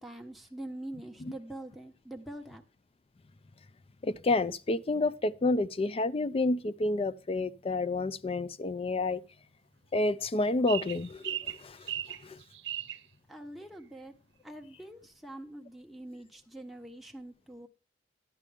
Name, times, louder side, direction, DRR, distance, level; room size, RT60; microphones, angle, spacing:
voice 1, 0.0-2.6 13.3-14.1 14.4-17.7, right 1 dB, ahead, 1.3 m, -44 dB
voice 2, 4.0-9.2 9.9-11.8 12.2-12.4, left 2 dB, 35° left, 0.4 m, -29 dB
sound 1, 10.7-13.0, right 11 dB, 80° right, 0.7 m, -37 dB
11.0 x 9.8 x 3.5 m
head